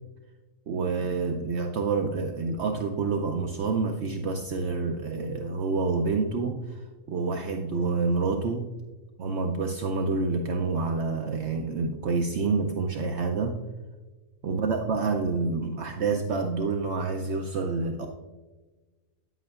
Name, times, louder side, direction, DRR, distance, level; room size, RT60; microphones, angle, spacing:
voice 1, 0.7-8.7 9.2-13.6 14.4-18.1, right 4 dB, 65° right, 3 dB, 0.8 m, -28 dB
9.5 x 7.8 x 2.4 m, 1.2 s
omnidirectional pair, 1.4 m